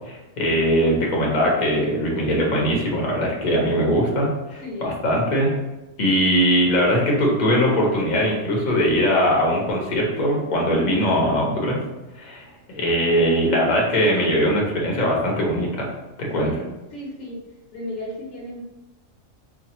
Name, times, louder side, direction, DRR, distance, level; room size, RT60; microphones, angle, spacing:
voice 1, 0.1-5.5 6.0-11.8 12.2-15.9 16.2-16.5, equal, 40° left, -2 dB, 0.8 m, -21 dB
voice 2, 4.6-5.0 16.4-17.4 17.7-18.6, left 1 dB, 70° left, -2 dB, 1.2 m, -34 dB
4.6 x 2.2 x 2.9 m, 1.1 s
omnidirectional pair, 1.4 m